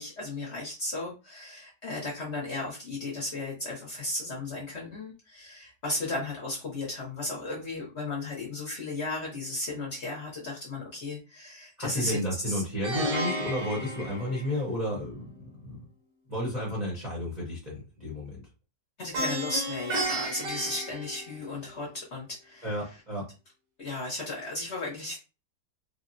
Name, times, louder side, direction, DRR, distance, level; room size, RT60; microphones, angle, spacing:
voice 1, 0.0-12.2 12.5-12.6 19.0-23.0 23.8-25.2, left 2 dB, 50° left, -3 dB, 0.9 m, -35 dB
voice 2, 11.8-15.8 16.3-18.4 22.6-23.3, equal, 35° right, -5 dB, 0.7 m, -32 dB
Plucked string instrument, 12.8-15.0 19.1-21.7, right 1 dB, 85° right, 1.6 m, -33 dB
3.5 x 2.0 x 2.5 m, 0.31 s
omnidirectional pair, 1.9 m